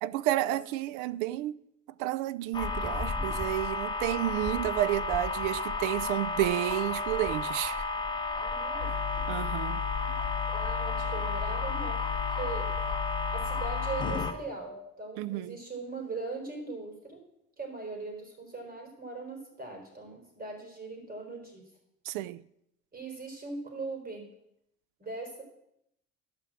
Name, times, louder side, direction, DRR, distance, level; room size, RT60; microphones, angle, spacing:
voice 1, 0.0-1.6 2.0-7.8 9.3-9.8 15.2-15.6 22.1-22.4, right 15 dB, 90° right, 0.5 m, -31 dB
sound 1, 2.5-14.3, left 3 dB, 15° left, 1.2 m, -33 dB
sound 2, 4.8-14.8, right 1 dB, 45° right, 1.8 m, -44 dB
voice 2, 8.3-8.9 10.5-12.0 12.3-12.7 13.3-17.2 17.6-21.6 22.9-24.3 25.0-25.4, right 3 dB, 30° right, 4.1 m, -40 dB
sound 3, 8.8-14.3, left 16 dB, 65° left, 0.9 m, -35 dB
11.5 x 5.9 x 7.4 m
supercardioid pair, 90°, 30 cm